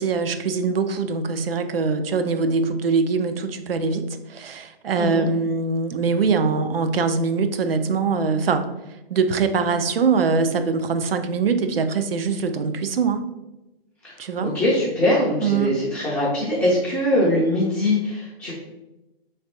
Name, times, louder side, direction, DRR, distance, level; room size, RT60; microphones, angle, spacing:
voice 1, 0.0-8.7 9.1-13.2 14.2-14.5 15.4-15.8, right 5 dB, 70° right, 9 dB, 0.5 m, -23 dB
voice 2, 14.0-18.5, left 1 dB, 5° left, -9 dB, 0.5 m, -22 dB
3.5 x 3.3 x 4.3 m, 1.0 s
figure-of-eight pair, 125°, 30 cm